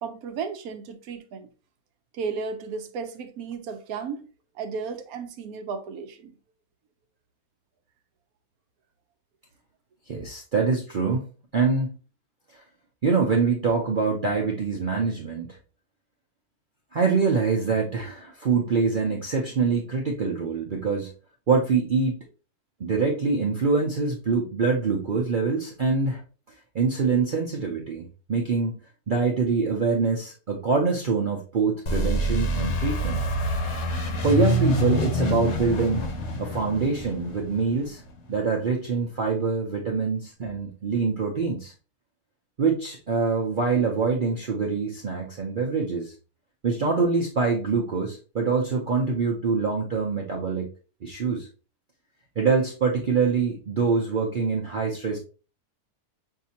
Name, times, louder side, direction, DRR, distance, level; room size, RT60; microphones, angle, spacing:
voice 1, 0.0-1.5 2.1-4.3 4.6-6.3, right 5 dB, 75° right, 1.0 m, -34 dB
voice 2, 10.1-11.3 11.5-11.9 12.5-12.6 13.0-15.6 16.9-21.1 21.5-22.2 22.8-26.2 26.7-28.8 29.1-33.2 34.2-36.1 36.4-38.0 38.3-41.7 42.6-46.1 46.6-50.7 51.0-51.5 52.4-55.2, right 4 dB, 55° right, 0.5 m, -25 dB
sound 1, 31.9-38.4, left 1 dB, 55° left, 1.0 m, -27 dB
5.7 x 2.7 x 2.8 m
omnidirectional pair, 1.7 m